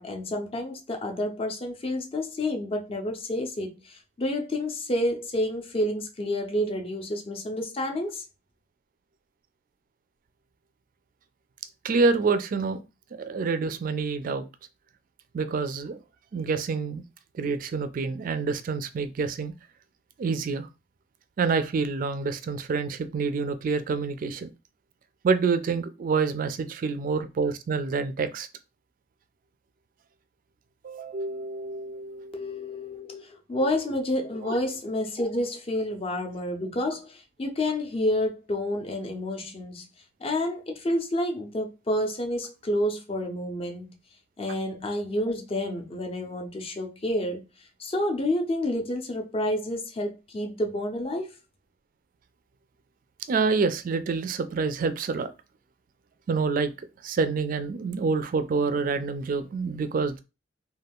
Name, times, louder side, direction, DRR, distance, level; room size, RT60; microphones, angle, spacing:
voice 1, 0.0-8.2 32.3-39.9 40.2-43.9 44.4-47.4 47.8-51.3, left 1 dB, 30° left, 0.5 m, -29 dB
voice 2, 11.8-12.8 13.2-14.4 15.3-16.0 16.3-17.0 17.3-19.5 20.2-20.7 21.4-24.5 25.2-28.5 30.8-32.5 33.5-33.7 34.4-34.5 53.3-55.3 56.3-56.7 57.0-60.2, right 4 dB, 45° right, 0.3 m, -27 dB
2.4 x 2.2 x 3.5 m
head